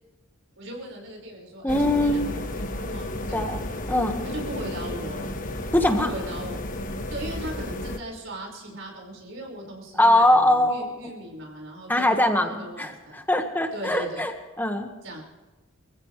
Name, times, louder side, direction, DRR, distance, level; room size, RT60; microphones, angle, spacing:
voice 1, 0.6-3.7 4.2-5.4 6.0-6.6 7.1-13.2 13.7-14.3 15.0-15.2, right 1 dB, 65° right, 0 dB, 5.3 m, -38 dB
voice 2, 1.6-2.3 3.3-3.6 3.9-4.2 5.7-6.1 10.0-10.8 11.9-14.3 14.6-14.9, left 1 dB, 10° left, 5 dB, 1.5 m, -22 dB
sound 1, 1.7-8.0, left 1 dB, 40° left, 1.3 m, -32 dB
27.5 x 15.5 x 3.3 m, 1.2 s
head